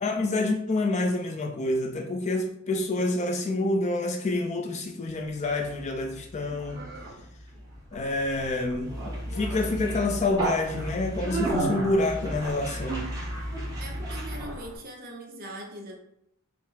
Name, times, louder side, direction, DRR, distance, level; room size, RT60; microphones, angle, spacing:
voice 1, 0.0-6.9 7.9-8.9 9.3-13.1, left 2 dB, 30° left, 2 dB, 0.3 m, -27 dB
Conversation, 5.3-14.8, right 1 dB, 15° right, 1.1 m, -33 dB
voice 2, 13.8-15.9, right 1 dB, 40° right, 1 dB, 0.7 m, -41 dB
4.1 x 2.0 x 4.1 m, 0.75 s
head